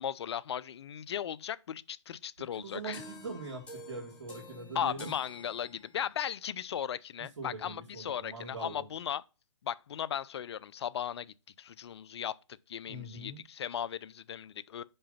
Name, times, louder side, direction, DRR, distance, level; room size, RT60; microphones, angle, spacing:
voice 1, 0.0-3.0 4.7-9.2 9.6-12.4 12.7-14.8, left 9 dB, 60° left, 0.6 m, -37 dB
voice 2, 2.5-5.1 7.4-8.8 12.9-13.4, right 3 dB, 75° right, 2.3 m, -42 dB
sound 1, 2.9-6.2, left 2 dB, 10° left, 2.6 m, -50 dB
5.5 x 5.0 x 5.6 m
hypercardioid pair, 140°, 16 cm